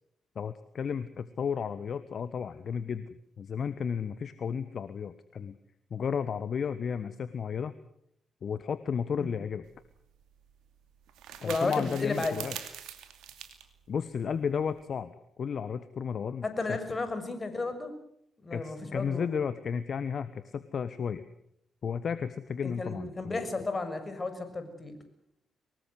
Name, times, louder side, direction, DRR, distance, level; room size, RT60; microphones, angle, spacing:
voice 1, 0.3-3.1 3.4-5.6 5.9-7.7 8.4-9.6 11.4-12.6 13.9-15.1 15.4-16.8 18.5-21.2 21.8-23.5, left 7 dB, 55° left, 13 dB, 1.2 m, -33 dB
sound 1, 9.7-14.8, right 10 dB, 70° right, 2.6 m, -45 dB
voice 2, 11.4-12.3 16.4-17.9 18.4-19.4 22.6-24.9, left 3 dB, 35° left, 9 dB, 6.5 m, -33 dB
24.5 x 20.0 x 8.1 m, 0.73 s
hypercardioid pair, 40°, 0 cm